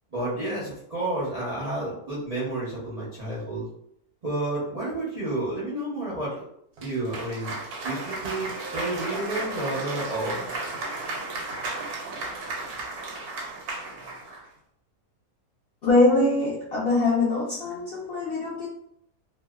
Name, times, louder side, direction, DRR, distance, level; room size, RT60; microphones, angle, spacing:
voice 1, 0.1-3.7 4.2-6.5 6.8-7.6 7.8-10.4, right 2 dB, 50° right, -9 dB, 0.4 m, -30 dB
Cheering / Applause, 6.8-14.5, right 2 dB, 85° right, 1.1 m, -34 dB
voice 2, 15.8-18.7, left 2 dB, 60° left, -7 dB, 0.6 m, -23 dB
2.6 x 2.0 x 2.3 m, 0.71 s
omnidirectional pair, 1.6 m